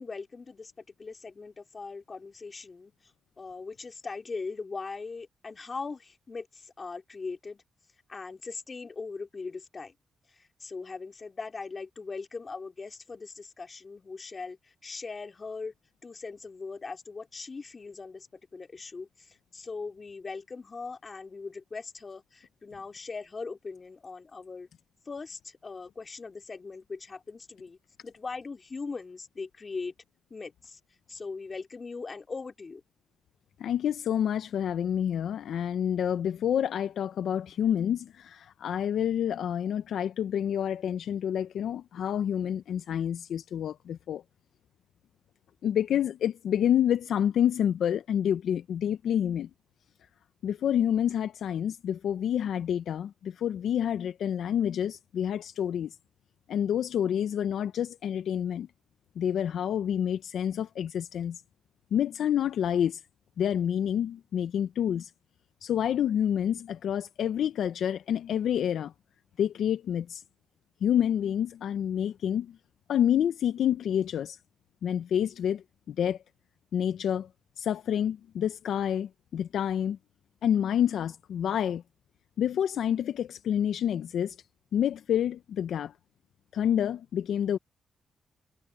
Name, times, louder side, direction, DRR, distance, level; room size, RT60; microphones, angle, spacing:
voice 1, 0.0-2.9 3.4-7.6 8.1-9.9 10.3-15.7 16.0-24.7 25.1-27.8 28.0-29.9 30.3-30.8 31.1-32.8, left 4 dB, 40° left, 3.3 m, -40 dB
voice 2, 33.6-44.2 45.6-49.5 50.4-55.9 56.5-58.7 59.2-61.4 61.9-63.0 63.4-65.1 65.6-68.9 69.4-70.2 70.8-72.6 72.9-74.4 74.8-76.2 76.7-77.3 77.6-80.0 80.4-81.8 82.4-84.4 84.7-85.9 86.5-87.6, left 9 dB, 75° left, 0.8 m, -28 dB
supercardioid pair, 55°, 0 cm